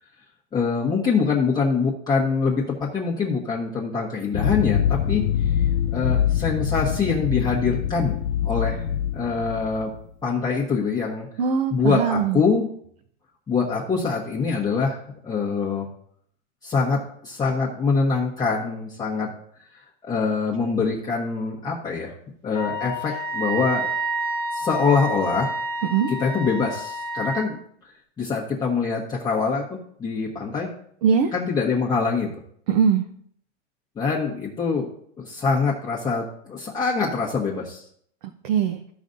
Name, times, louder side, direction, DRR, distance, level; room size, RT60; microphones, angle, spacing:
voice 1, 0.5-5.2 5.9-8.8 9.1-9.9 10.2-11.3 11.7-12.7 13.5-15.0 15.2-15.9 16.6-19.3 20.0-22.1 22.4-23.9 24.5-25.5 26.1-27.6 28.2-30.7 31.3-32.3 34.0-34.9 35.2-37.8, left 5 dB, 10° left, -4 dB, 1.2 m, -24 dB
sound 1, 4.3-10.0, left 10 dB, 45° left, 0.5 m, -24 dB
voice 2, 11.4-12.4 25.9-26.1 31.0-31.3 32.7-33.0 38.4-38.8, right 7 dB, 45° right, 6 dB, 0.8 m, -21 dB
Wind instrument woodwind instrument, 22.5-27.5, right 1 dB, 80° right, 2.2 m, -29 dB
15.0 x 5.1 x 2.6 m, 0.64 s
supercardioid pair, 160°, 35 cm